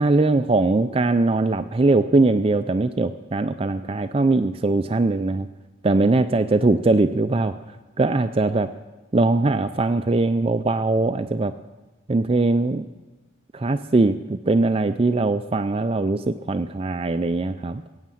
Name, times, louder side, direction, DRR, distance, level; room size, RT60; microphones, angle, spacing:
voice 1, 0.0-5.5 5.8-7.5 8.0-8.7 9.1-11.5 12.1-12.8 13.5-17.8, right 2 dB, 30° right, 10 dB, 0.4 m, -21 dB
17.0 x 7.3 x 9.0 m, 1.2 s
head